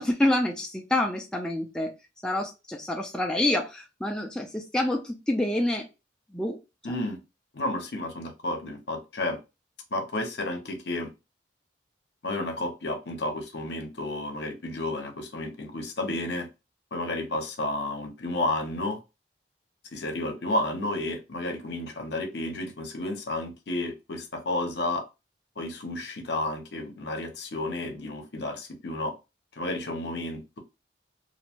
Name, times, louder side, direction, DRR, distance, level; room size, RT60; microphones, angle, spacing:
voice 1, 0.0-1.9 2.2-5.9 6.3-6.6 6.9-7.0, left 1 dB, 5° left, 0.4 m, -27 dB
voice 2, 6.8-7.2 7.5-9.4 9.9-11.1 12.2-16.5 16.9-19.0 19.9-25.0 25.6-29.1 29.6-30.6, left 2 dB, 65° left, 0.7 m, -31 dB
2.6 x 2.1 x 2.8 m
head